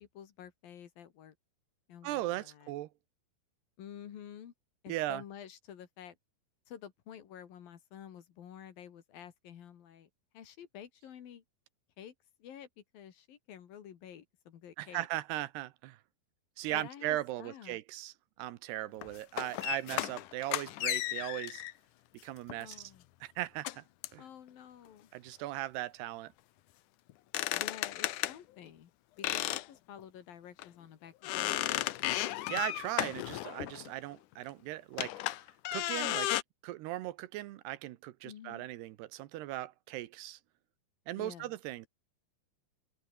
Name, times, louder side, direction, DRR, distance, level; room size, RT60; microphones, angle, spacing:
voice 1, 0.0-1.4 1.9-2.7 3.8-4.5 4.8-6.2 6.7-10.1 10.3-11.4 12.0-12.1 12.4-15.1 16.7-17.8 22.6-23.1 24.2-25.1 27.5-28.9 29.2-31.5 38.2-38.7 41.2-41.5, left 9 dB, 60° left, 3.6 m, -50 dB
voice 2, 2.0-2.9 4.9-5.2 14.8-16.0 16.6-21.6 22.2-22.9 23.2-23.8 24.1-24.2 25.1-26.3 32.5-35.1 35.7-36.3 36.6-40.4 41.1-41.9, right 16 dB, 80° right, 3.0 m, -38 dB
sound 1, 19.0-21.7 22.5-22.7 23.7-23.8 24.0-24.2 27.1-28.4 29.2-29.7 30.0-30.1 30.6-30.7 31.2-33.9 34.9-36.4, left 15 dB, 80° left, 1.8 m, -34 dB
open air
omnidirectional pair, 4.8 m